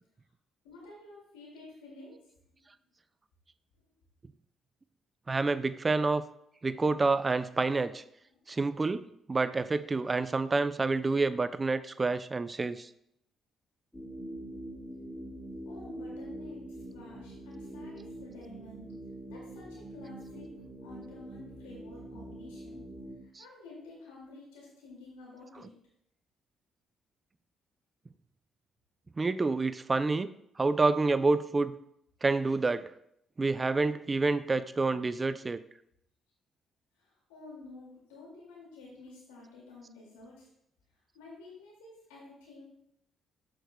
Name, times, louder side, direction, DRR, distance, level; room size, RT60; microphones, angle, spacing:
voice 1, 0.6-2.2 2.5-2.6 8.3-8.4 15.6-18.9 19.3-22.8 23.4-25.7 37.0-40.5 41.1-42.6, left 2 dB, 85° left, -3 dB, 2.2 m, -50 dB
voice 2, 5.3-6.2 6.6-8.0 8.5-12.9 23.4-23.5 29.2-31.8 32.2-32.9 33.4-35.6, right 3 dB, 30° right, 15 dB, 0.4 m, -28 dB
sound 1, 13.9-23.2, right 1 dB, 10° left, 2.0 m, -44 dB
7.7 x 6.4 x 2.2 m, 0.74 s
hypercardioid pair, 50°, 0 cm